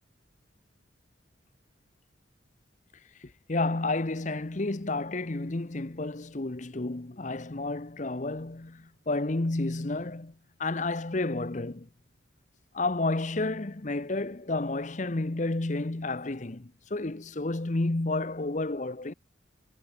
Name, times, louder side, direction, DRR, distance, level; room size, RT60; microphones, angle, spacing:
voice 1, 3.2-10.3 10.6-11.9 12.7-19.1, left 2 dB, 40° left, 0.8 m, -31 dB
head